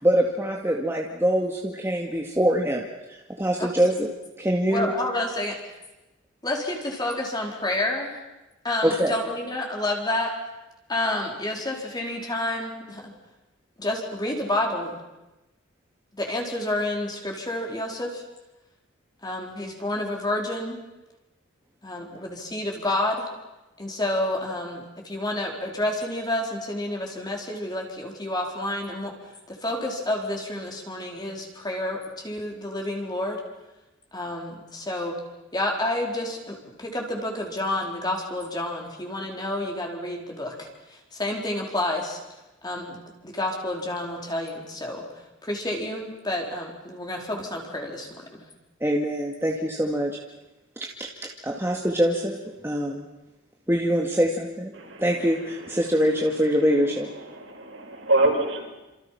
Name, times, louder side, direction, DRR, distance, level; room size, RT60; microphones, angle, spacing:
voice 1, 0.0-2.8 3.1-4.1 4.4-4.9 8.8-9.1 48.8-50.2 51.0-51.1 51.4-52.4 52.6-53.1 53.7-54.7 55.0-57.1, equal, 10° right, -1 dB, 2.2 m, -24 dB
voice 2, 4.7-5.6 6.4-8.2 8.6-10.3 10.9-13.1 13.8-15.0 16.1-18.2 19.2-20.8 21.8-23.3 23.8-29.1 29.5-33.4 34.1-35.2 35.5-42.2 42.6-43.0 43.2-45.0 45.4-48.4, left 1 dB, 20° left, 0 dB, 4.5 m, -29 dB
voice 3, 57.2-58.7, right 2 dB, 65° right, 0 dB, 6.9 m, -25 dB
29.0 x 27.0 x 6.0 m, 1.0 s
head